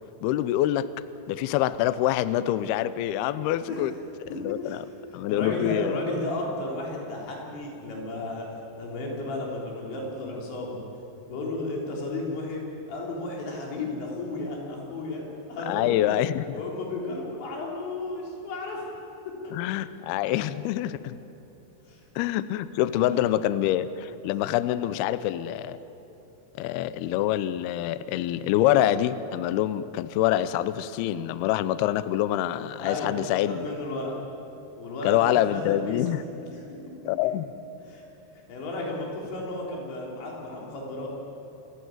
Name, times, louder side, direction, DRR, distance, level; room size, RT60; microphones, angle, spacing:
voice 1, 0.2-0.9 1.3-3.9 4.4-4.8 5.1-6.0 15.7-16.6 19.5-21.2 22.2-25.8 26.6-33.7 35.0-36.2 37.1-37.5, left 13 dB, 85° left, 14 dB, 2.2 m, -26 dB
voice 2, 4.3-4.8 5.1-8.5 8.7-10.8 11.3-12.6 12.9-15.2 15.5-16.0 16.5-18.9 19.4-19.5 21.9-22.0 23.0-23.5 32.8-34.2 34.8-36.1 36.5-36.6 37.2-37.3 37.9-38.0 38.3-41.1, left 2 dB, 70° left, -2 dB, 6.2 m, -33 dB
27.5 x 15.0 x 9.4 m, 2.9 s
omnidirectional pair, 5.4 m